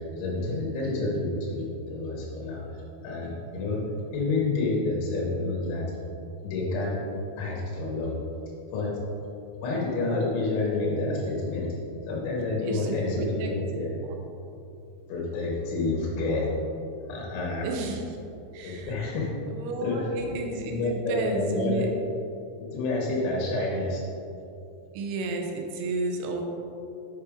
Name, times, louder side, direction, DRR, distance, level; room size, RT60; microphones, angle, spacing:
voice 1, 0.1-2.7 3.0-3.8 4.1-5.9 6.4-7.0 7.4-8.2 8.7-8.9 9.6-11.7 12.1-13.9 15.1-16.5 17.1-17.7 18.6-20.1 20.6-21.9 22.7-24.0, left 2 dB, 85° left, -3 dB, 3.7 m, -29 dB
voice 2, 12.6-14.2 17.6-18.0 18.5-18.9 19.5-21.9 24.9-26.4, right 3 dB, 80° right, 1 dB, 3.1 m, -32 dB
8.3 x 5.4 x 3.5 m, 2.7 s
omnidirectional pair, 5.4 m